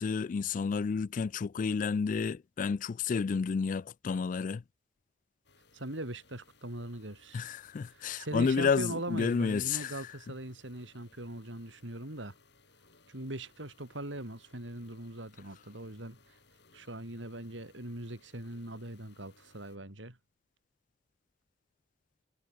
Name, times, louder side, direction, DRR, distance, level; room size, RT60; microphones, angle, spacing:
voice 1, 0.0-4.6 7.3-10.0, left 5 dB, 45° left, 0.3 m, -31 dB
sound 1, 5.4-19.8, left 3 dB, 65° left, 6.4 m, -64 dB
voice 2, 5.7-7.5 7.9-12.3 13.1-16.2 16.7-20.2, right 1 dB, 80° right, 4.7 m, -41 dB
head